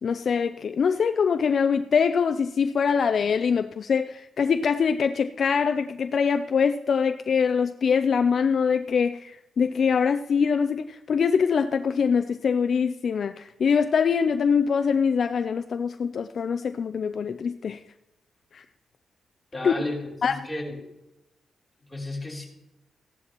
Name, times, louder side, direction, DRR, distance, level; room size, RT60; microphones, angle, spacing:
voice 1, 0.0-17.8 18.5-18.6 19.6-19.9 20.2-20.5, left 6 dB, 50° left, 9 dB, 0.4 m, -23 dB
voice 2, 19.5-20.0 20.4-20.8 21.9-22.5, left 1 dB, 10° left, -4 dB, 3.3 m, -32 dB
15.5 x 11.0 x 3.0 m, 0.91 s
wide cardioid pair, 145°, 0 cm